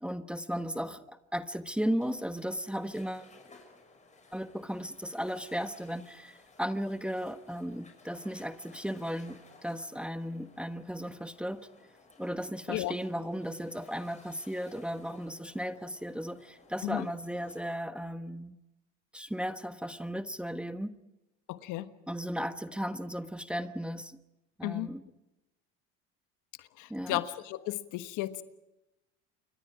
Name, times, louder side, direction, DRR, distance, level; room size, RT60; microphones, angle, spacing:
voice 1, 0.0-3.3 4.3-11.7 12.2-18.5 19.1-20.9 22.1-24.2 24.6-25.0 26.9-27.2, equal, 5° right, 10 dB, 1.1 m, -35 dB
sound 1, 2.0-17.8, left 3 dB, 20° left, 6.2 m, -59 dB
voice 2, 21.5-21.9 24.6-24.9 26.6-28.4, left 16 dB, 60° left, 11 dB, 1.4 m, -34 dB
28.5 x 24.0 x 4.9 m, 0.94 s
hypercardioid pair, 85°, 34 cm